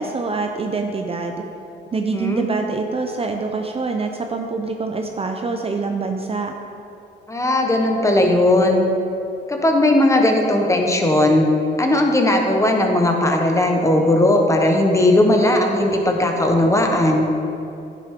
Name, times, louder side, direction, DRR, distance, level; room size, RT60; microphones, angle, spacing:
voice 1, 0.0-1.4 1.9-6.5, right 4 dB, 30° right, 4 dB, 0.6 m, -25 dB
voice 2, 1.9-2.5 7.3-8.8 9.5-11.5 11.8-17.3, left 1 dB, 15° left, 2 dB, 1.1 m, -17 dB
10.5 x 7.5 x 3.7 m, 2.8 s
cardioid pair, 90°, 20 cm